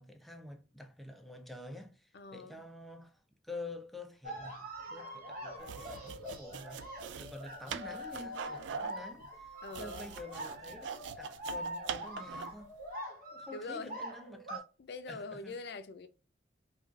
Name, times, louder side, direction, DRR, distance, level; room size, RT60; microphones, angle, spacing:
voice 1, 0.0-12.7 13.3-14.6 15.1-15.6, left 2 dB, ahead, 0.4 m, -48 dB
voice 2, 2.1-2.6 9.6-10.1 13.5-14.0 14.8-16.1, left 3 dB, 65° left, 0.5 m, -43 dB
sound 1, 4.2-14.6, equal, 55° right, 1.1 m, -44 dB
sound 2, 5.6-12.6, right 7 dB, 75° right, 0.3 m, -43 dB
4.7 x 2.3 x 2.3 m
head